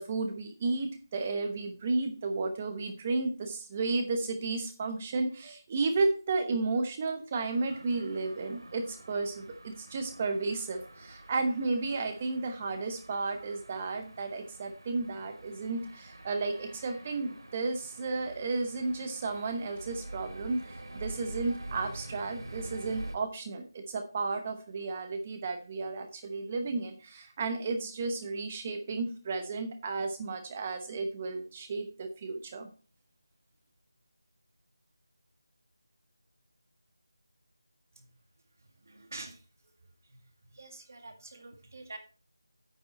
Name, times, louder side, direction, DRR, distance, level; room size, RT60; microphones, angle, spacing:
voice 1, 0.0-32.7, right 3 dB, 15° right, 6 dB, 0.9 m, -33 dB
sound 1, 7.4-23.2, right 1 dB, 80° right, 2.5 m, -47 dB
voice 2, 38.6-39.5 40.0-40.2 40.5-42.0, right 2 dB, 40° right, 6 dB, 1.9 m, -47 dB
8.8 x 7.9 x 4.2 m, 0.37 s
figure-of-eight pair, 175°, 2 cm